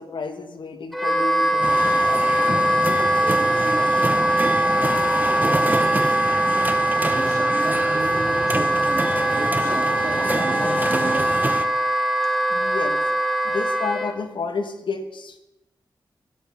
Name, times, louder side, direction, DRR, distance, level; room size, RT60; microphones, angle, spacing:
voice 1, 0.0-2.2 12.5-13.0 13.4-15.4, left 4 dB, 75° left, 7 dB, 1.5 m, -31 dB
Wind instrument woodwind instrument, 0.9-14.1, right 1 dB, ahead, 1.5 m, -21 dB
sound 1, 1.6-11.7, right 2 dB, 20° right, 1.0 m, -27 dB
voice 2, 7.0-11.4, right 2 dB, 40° right, 1 dB, 2.8 m, -33 dB
12.5 x 12.0 x 5.8 m, 0.97 s
wide cardioid pair, 125°, 8 cm